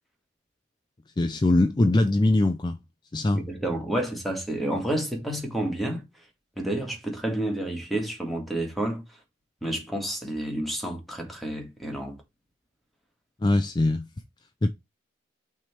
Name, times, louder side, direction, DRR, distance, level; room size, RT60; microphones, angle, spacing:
voice 1, 1.2-2.8 3.1-3.4 13.4-14.1 14.6-14.7, left 2 dB, 25° left, 0.4 m, -22 dB
voice 2, 3.3-6.1 6.6-9.2 9.6-12.2, right 1 dB, ahead, 2.0 m, -30 dB
6.0 x 3.4 x 5.8 m
head